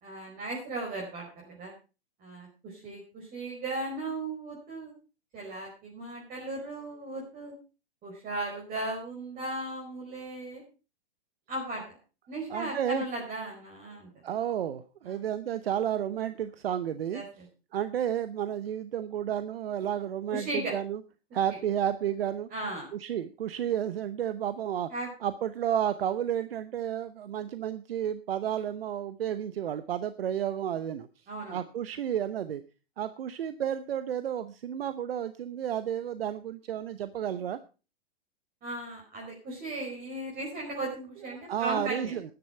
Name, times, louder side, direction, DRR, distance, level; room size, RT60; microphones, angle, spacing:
voice 1, 0.0-1.7 2.2-4.9 5.3-7.6 8.0-10.6 11.5-11.9 12.3-14.1 15.0-15.2 17.1-17.5 20.3-20.7 22.5-22.9 24.9-25.1 31.3-31.6 38.6-42.1, right 2 dB, 30° right, -2 dB, 4.8 m, -36 dB
voice 2, 12.5-13.0 14.2-17.2 17.7-21.0 21.3-22.5 22.9-24.9 25.2-31.1 31.5-32.6 33.0-37.6 41.5-42.2, right 10 dB, 80° right, 12 dB, 0.9 m, -31 dB
13.5 x 11.0 x 4.4 m, 0.33 s
hypercardioid pair, 120°, 29 cm